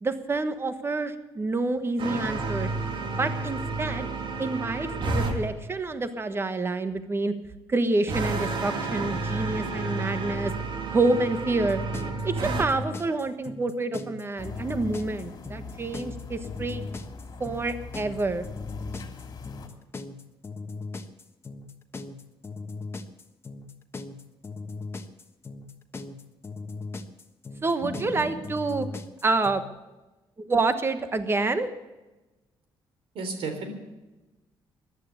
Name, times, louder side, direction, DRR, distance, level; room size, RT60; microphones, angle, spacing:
voice 1, 0.0-2.7 3.2-4.1 4.4-7.3 7.7-10.5 10.9-11.8 12.2-16.8 17.4-18.4 27.6-28.9 29.2-29.6 30.4-31.7, right 3 dB, 25° right, 10 dB, 1.3 m, -27 dB
sound 1, 2.0-5.4 8.1-12.7, right 3 dB, 60° right, 2.5 m, -30 dB
sound 2, 11.6-29.6, left 3 dB, 25° left, 1.3 m, -38 dB
sound 3, 14.4-19.7, left 4 dB, 45° left, 2.6 m, -41 dB
voice 2, 27.8-28.4 33.1-33.7, right 2 dB, 80° right, 7 dB, 3.5 m, -34 dB
14.5 x 11.0 x 8.2 m, 1.1 s
cardioid pair, 110°, 9 cm